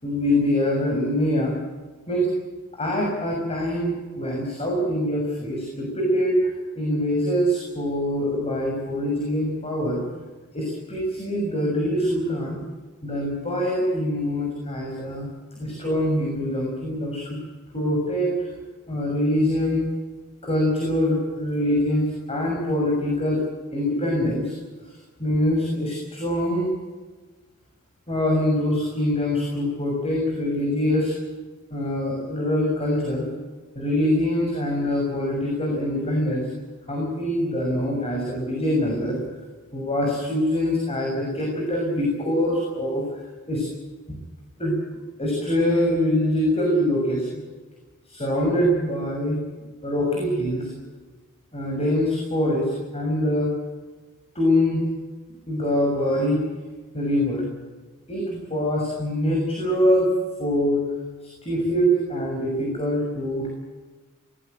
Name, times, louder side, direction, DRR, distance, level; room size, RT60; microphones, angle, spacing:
voice 1, 0.0-1.5 2.1-2.3 2.7-10.0 10.5-12.6 13.0-15.3 15.6-17.4 17.7-18.5 18.9-19.8 20.4-23.4 23.7-24.5 25.2-26.7 28.1-31.1 31.7-33.3 33.7-36.5 36.9-39.2 39.7-43.0 43.5-43.6 44.6-44.8 45.2-47.3 48.0-49.4 49.8-50.7 51.5-53.5 54.3-54.8 55.5-56.4 56.9-57.4 58.1-60.1 60.4-60.9 61.2-63.5, equal, 30° left, -1 dB, 6.5 m, -24 dB
20.0 x 20.0 x 9.3 m, 1.3 s
head